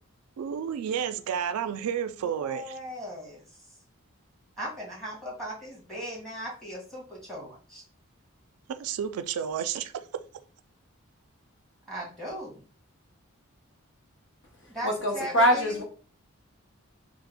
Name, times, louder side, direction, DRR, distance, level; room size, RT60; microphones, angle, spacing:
voice 1, 0.4-2.8 8.7-10.2, right 8 dB, 85° right, 0.3 m, -31 dB
voice 2, 2.2-3.4 4.6-7.8 11.9-12.6 14.7-15.8, equal, ahead, 1.3 m, -38 dB
voice 3, 14.8-15.8, equal, 55° left, 0.9 m, -23 dB
3.3 x 2.0 x 3.6 m
head